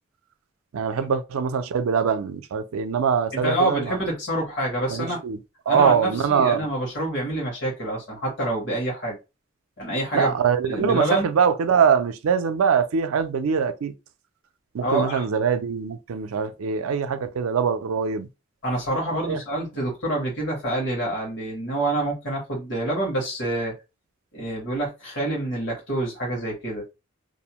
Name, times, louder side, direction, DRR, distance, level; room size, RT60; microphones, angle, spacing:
voice 1, 0.7-4.0 4.9-5.4 5.7-6.7 10.1-13.9 14.7-18.3 19.3-19.4, right 6 dB, 85° right, 0.4 m, -23 dB
voice 2, 3.3-5.2 5.7-9.2 9.8-10.3 10.6-11.3 14.8-15.2 18.6-23.7 24.3-26.8, right 1 dB, 55° left, 1.2 m, -27 dB
2.6 x 2.0 x 2.9 m
head